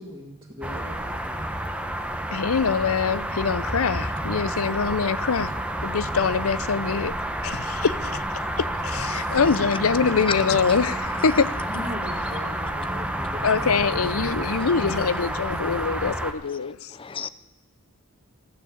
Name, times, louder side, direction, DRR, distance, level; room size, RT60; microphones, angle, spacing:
voice 1, 0.0-1.5 8.6-9.2 11.7-14.5 14.8-16.0, equal, 25° right, 2.2 m, -40 dB
sound 1, 0.6-16.3, right 1 dB, 5° right, 1.0 m, -29 dB
voice 2, 2.3-5.5 5.8-7.1 7.4-8.2 8.6-11.5 13.4-16.9, left 5 dB, 75° left, 0.6 m, -24 dB
voice 3, 16.5-17.3, left 6 dB, 25° left, 0.5 m, -32 dB
14.0 x 9.2 x 8.8 m
head